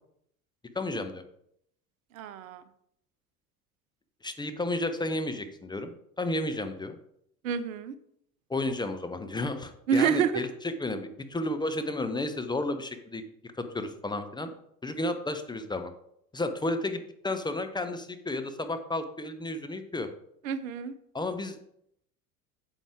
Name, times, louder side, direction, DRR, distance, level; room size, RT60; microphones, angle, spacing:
voice 1, 0.7-1.2 4.2-7.0 8.5-13.2 13.6-14.5 14.8-15.9 16.3-20.1 21.1-21.6, left 2 dB, 10° left, 7 dB, 0.7 m, -32 dB
voice 2, 2.1-2.6 7.4-7.9 9.9-10.4 20.4-20.9, right 7 dB, 60° right, 14 dB, 0.7 m, -27 dB
9.1 x 7.2 x 3.5 m, 0.72 s
figure-of-eight pair, 70°, 45 cm